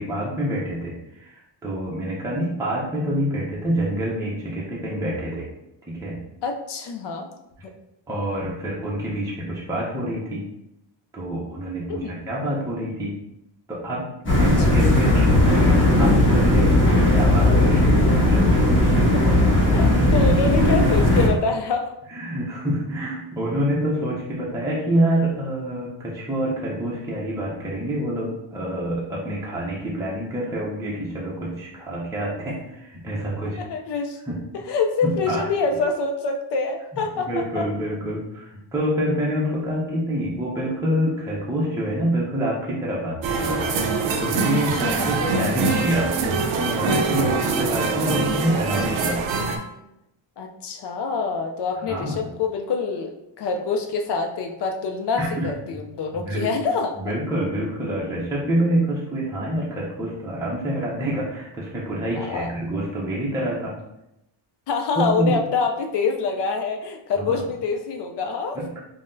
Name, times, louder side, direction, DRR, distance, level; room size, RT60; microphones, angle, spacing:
voice 1, 0.0-5.5 5.9-6.2 8.1-10.4 11.1-13.1 13.7-14.1 14.4-19.0 19.6-19.7 20.1-20.9 22.1-33.6 34.2-34.4 35.0-35.5 37.2-43.8 44.2-49.2 51.9-52.3 55.2-55.5 56.2-56.5 57.0-63.7 65.0-65.4 67.2-67.4 68.6-68.8, right 1 dB, 5° right, -5 dB, 0.5 m, -27 dB
voice 2, 6.4-7.3 11.9-12.2 14.4-14.8 19.1-21.9 33.6-34.2 34.5-37.7 44.8-45.2 47.2-47.5 50.4-57.1 62.1-62.5 64.7-68.6, left 4 dB, 60° left, 3 dB, 0.5 m, -26 dB
sound 1, 14.3-21.3, left 1 dB, 25° left, 1.1 m, -17 dB
sound 2, 43.2-49.6, right 4 dB, 70° right, 0.6 m, -24 dB
5.4 x 2.1 x 2.6 m, 0.85 s
cardioid pair, 140°, 47 cm